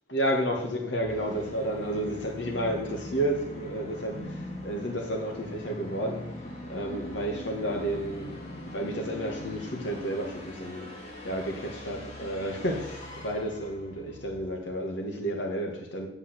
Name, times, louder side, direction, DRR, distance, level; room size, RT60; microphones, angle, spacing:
voice 1, 0.1-6.4 6.7-10.9 11.2-16.1, right 1 dB, 80° left, 2.1 m, -31 dB
Musical instrument, 1.0-14.7, left 1 dB, 40° left, 2.4 m, -42 dB
8.6 x 5.6 x 8.0 m
head